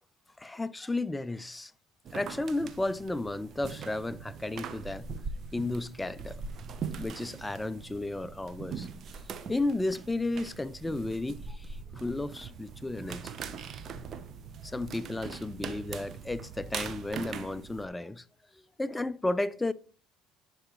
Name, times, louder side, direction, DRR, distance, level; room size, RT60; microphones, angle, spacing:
voice 1, 0.4-1.7 2.1-5.1 5.5-6.4 7.0-8.9 9.5-13.3 14.6-18.2 18.8-19.7, left 2 dB, 10° left, 0.4 m, -33 dB
sound 1, 2.0-17.9, right 6 dB, 50° right, 0.8 m, -41 dB
10.5 x 4.6 x 3.0 m
hypercardioid pair, 75°, 0 cm